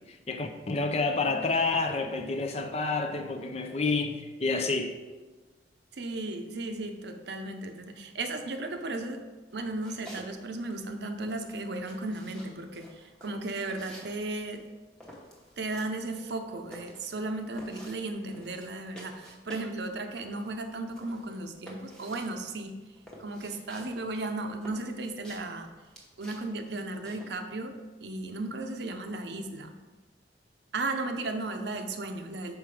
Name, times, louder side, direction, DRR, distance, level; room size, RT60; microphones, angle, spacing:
voice 1, 0.0-5.0, left 3 dB, 35° left, 0.5 m, -29 dB
voice 2, 5.9-9.2 9.5-14.6 15.6-22.8 23.2-25.7 26.2-29.7 30.7-32.6, right 2 dB, 60° right, 0.6 m, -35 dB
sound 1, 9.5-10.3 10.6-19.8 20.1-27.4, equal, 5° left, 1.0 m, -50 dB
5.9 x 4.6 x 4.8 m
head